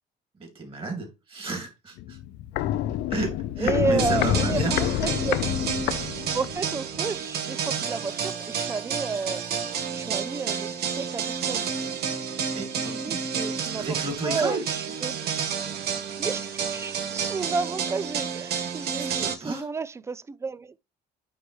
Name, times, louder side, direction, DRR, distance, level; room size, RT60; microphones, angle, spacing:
voice 1, 0.4-2.2 3.1-4.8 12.5-13.2 13.8-14.6 18.9-19.7, right 3 dB, 30° right, 2.8 m, -32 dB
Walk footsteps, 2.0-6.7 7.0-7.1, left 12 dB, 85° left, 0.5 m, -27 dB
voice 2, 3.6-5.5 6.3-9.4 9.9-11.7 12.8-13.9 14.2-15.4 16.2-20.7, right 4 dB, 15° right, 0.3 m, -31 dB
sound 1, 4.0-19.3, right 6 dB, 70° right, 1.3 m, -30 dB
9.4 x 3.2 x 3.2 m
cardioid pair, 110°, 17 cm